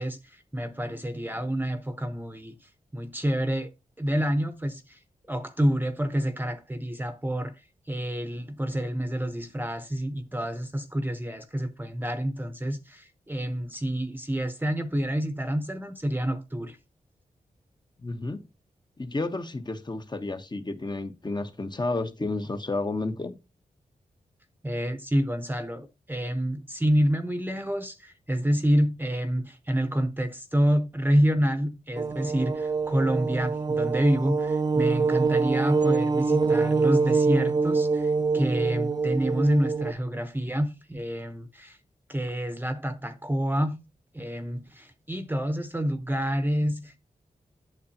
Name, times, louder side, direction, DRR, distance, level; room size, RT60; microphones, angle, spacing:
voice 1, 0.0-3.7 4.0-5.0 5.3-7.6 7.9-16.8 24.6-41.8 42.1-43.8 44.1-47.0, equal, 15° right, 0.9 m, -28 dB
voice 2, 18.0-18.4 19.0-23.4, left 2 dB, 30° left, 1.1 m, -31 dB
sound 1, 32.0-39.9, right 4 dB, 30° right, 0.5 m, -25 dB
8.5 x 6.7 x 2.8 m
cardioid pair, 50°, 15 cm